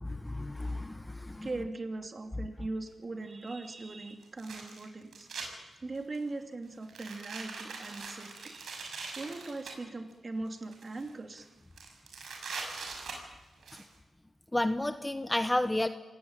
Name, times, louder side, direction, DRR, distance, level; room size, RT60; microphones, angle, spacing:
voice 1, 0.0-1.5 13.7-13.8 14.5-15.9, left 1 dB, 10° left, 9 dB, 1.1 m, -31 dB
voice 2, 1.4-5.3 5.8-8.7 9.2-11.5, right 2 dB, 35° right, 4 dB, 2.8 m, -40 dB
sound 1, 2.9-3.0 4.2-5.5 6.0-6.3 6.8-9.7 10.5-11.1 11.4-11.5 11.8-13.8, right 4 dB, 85° right, 6.6 m, -42 dB
27.0 x 18.0 x 9.0 m, 1.1 s
wide cardioid pair, 100°, 0 cm